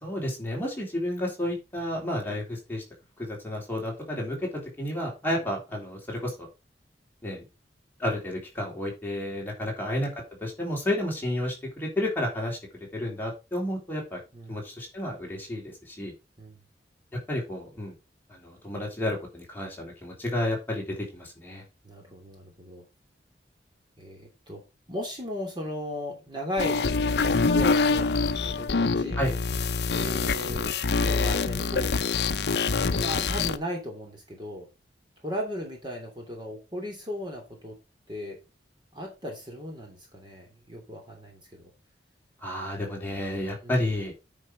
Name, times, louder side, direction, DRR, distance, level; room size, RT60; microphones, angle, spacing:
voice 1, 0.0-2.8 3.2-6.5 7.2-7.4 8.0-10.1 10.4-12.6 12.9-14.2 14.5-16.1 17.1-17.9 18.3-20.8 21.1-21.6 29.1-29.3 42.4-44.1, left 1 dB, 10° left, -2 dB, 3.3 m, -31 dB
voice 2, 21.8-22.8 24.0-24.6 24.9-26.9 27.4-28.1 28.4-29.2 29.9-30.7 31.0-31.9 32.9-34.7 35.2-37.7 38.1-38.4 38.9-41.7 43.6-43.8, equal, 25° right, 1 dB, 2.8 m, -36 dB
sound 1, 26.6-33.6, left 4 dB, 65° left, 0.6 m, -25 dB
9.5 x 5.4 x 4.5 m, 0.27 s
head